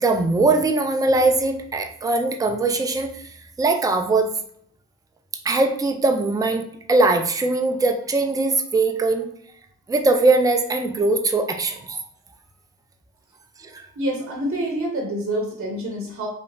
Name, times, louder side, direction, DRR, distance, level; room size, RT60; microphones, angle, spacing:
voice 1, 0.0-3.2 3.6-4.3 5.5-9.3 9.9-12.0 13.7-13.9, right 3 dB, 10° right, 5 dB, 0.4 m, -21 dB
voice 2, 14.0-16.3, right 1 dB, 35° right, 0 dB, 0.9 m, -27 dB
2.8 x 2.0 x 2.6 m, 0.67 s
supercardioid pair, 40°, 37 cm